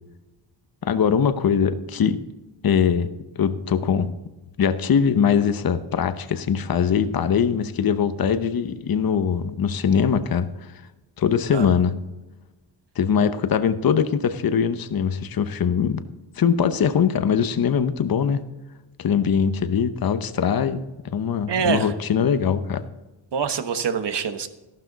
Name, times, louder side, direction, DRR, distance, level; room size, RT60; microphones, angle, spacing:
voice 1, 0.8-2.2 2.6-4.1 4.6-10.5 11.2-11.9 13.0-16.0 16.4-18.4 19.0-20.8 21.1-22.8, left 7 dB, 50° left, 11 dB, 0.9 m, -22 dB
voice 2, 21.5-21.9 23.3-24.5, right 6 dB, 60° right, 9 dB, 1.3 m, -25 dB
13.5 x 12.0 x 4.0 m, 1.1 s
cardioid pair, 90°, 46 cm